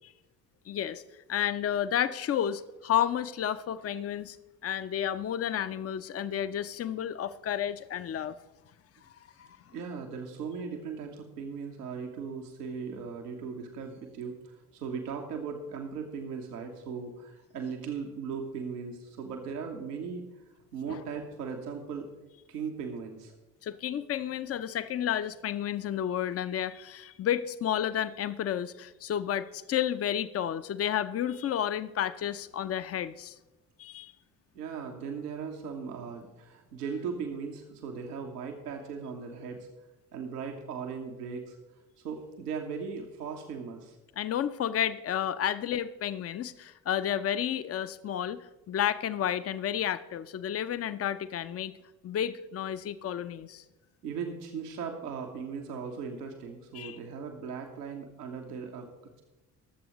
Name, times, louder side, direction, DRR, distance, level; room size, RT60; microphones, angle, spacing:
voice 1, 0.7-1.0 1.3-4.4 4.6-8.4 9.4-9.5 20.9-21.0 23.6-33.4 33.8-34.1 44.2-48.4 48.7-51.7 52.0-53.6 56.7-57.0, left 10 dB, 30° left, 13 dB, 0.6 m, -31 dB
voice 2, 9.7-20.3 20.7-22.1 22.5-23.4 34.5-39.7 40.1-41.6 42.0-44.0 54.0-58.9, right 6 dB, 80° right, 2 dB, 1.3 m, -38 dB
23.0 x 7.7 x 3.1 m, 1.0 s
figure-of-eight pair, 50°, 47 cm